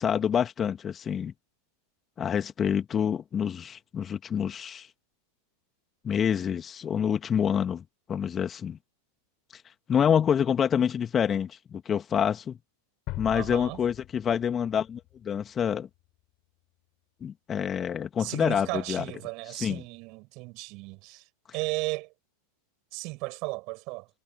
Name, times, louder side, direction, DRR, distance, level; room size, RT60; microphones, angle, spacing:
voice 1, 0.0-1.3 2.2-4.9 6.0-8.8 9.9-12.6 13.2-15.9 17.2-19.0 19.5-19.8, left 8 dB, 25° left, 2.8 m, -27 dB
sound 1, 13.1-15.9, left 20 dB, 40° left, 4.8 m, -42 dB
voice 2, 13.3-13.8 18.2-21.2 21.5-22.1 22.9-24.1, right 26 dB, 40° right, 7.4 m, -35 dB
figure-of-eight pair, 90°, 0 cm